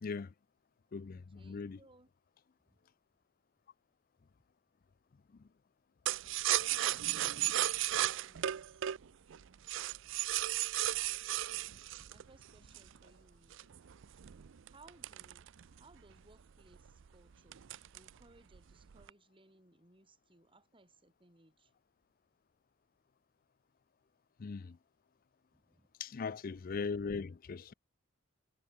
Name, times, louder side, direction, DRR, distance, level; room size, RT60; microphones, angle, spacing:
voice 1, 0.0-0.3 0.9-1.8 24.4-24.8 26.0-27.7, left 5 dB, 45° left, 0.4 m, -39 dB
voice 2, 1.1-2.1 2.7-2.8 6.7-8.9 12.1-13.6 14.7-15.5 15.8-17.6 17.9-21.7 25.5-25.9, right 2 dB, 25° right, 3.9 m, -64 dB
sound 1, 6.1-13.0 13.5-16.0 16.3-16.4 16.7-17.1 17.5-18.2 18.5-19.1, right 13 dB, 60° right, 0.5 m, -34 dB
head